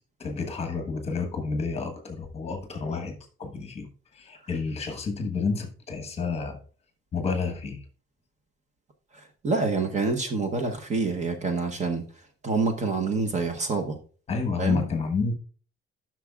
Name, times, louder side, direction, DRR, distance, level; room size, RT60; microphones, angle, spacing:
voice 1, 0.2-6.6 7.1-7.8 14.3-15.4, left 4 dB, 30° left, 1.2 m, -30 dB
voice 2, 9.1-12.0 12.4-14.0 14.6-14.8, right 4 dB, 35° right, 0.9 m, -27 dB
12.0 x 6.1 x 2.3 m
cardioid pair, 175°, 21 cm